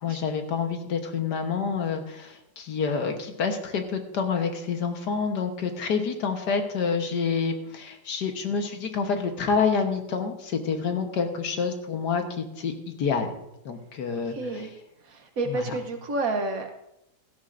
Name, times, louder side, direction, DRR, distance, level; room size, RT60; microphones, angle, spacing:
voice 1, 0.0-12.7 13.0-13.3 13.6-14.4 15.5-15.7, left 5 dB, 65° left, 5 dB, 1.7 m, -28 dB
voice 2, 14.3-14.7 15.0-16.7, right 2 dB, 55° right, 5 dB, 1.2 m, -30 dB
17.0 x 13.0 x 2.6 m, 0.85 s
omnidirectional pair, 1.9 m